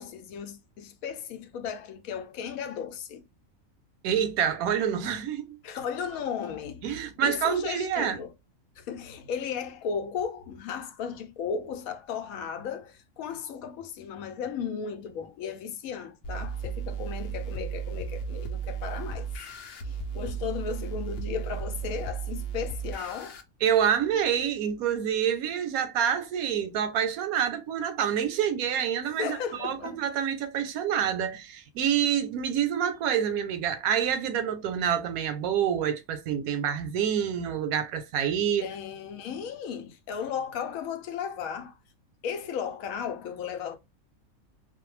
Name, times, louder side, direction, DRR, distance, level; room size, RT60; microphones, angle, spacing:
voice 1, 0.0-3.2 5.6-6.9 7.2-8.3 8.8-19.3 19.8-23.4 29.2-30.0 38.6-41.8 42.2-43.8, left 7 dB, 80° left, 1.0 m, -35 dB
voice 2, 4.0-5.6 6.8-8.2 23.6-38.7, right 8 dB, 90° right, 1.1 m, -27 dB
sound 1, 16.2-23.4, right 6 dB, 60° left, 0.7 m, -35 dB
2.5 x 2.1 x 3.1 m
omnidirectional pair, 1.5 m